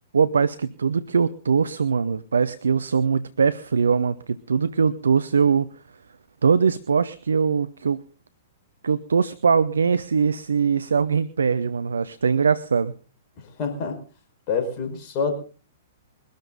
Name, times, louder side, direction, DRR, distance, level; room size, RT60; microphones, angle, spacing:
voice 1, 0.1-5.7 6.4-8.0 8.8-12.9, right 6 dB, 70° right, 15 dB, 0.7 m, -21 dB
voice 2, 13.4-14.0 14.5-15.3, left 5 dB, 35° left, 4 dB, 4.9 m, -27 dB
22.5 x 13.0 x 3.8 m, 0.38 s
figure-of-eight pair, 110°, 0 cm